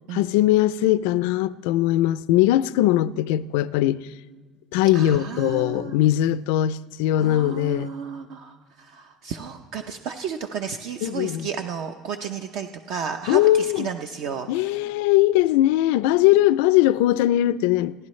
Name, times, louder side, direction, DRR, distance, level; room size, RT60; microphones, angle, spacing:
voice 1, 0.1-4.0 4.7-7.9 11.0-11.5 13.3-13.9 14.5-17.9, left 14 dB, 90° left, 0.4 m, -20 dB
voice 2, 4.9-5.9 7.2-14.7, right 6 dB, 55° right, 0.6 m, -33 dB
30.0 x 11.0 x 3.2 m
cardioid pair, 170°, 0 cm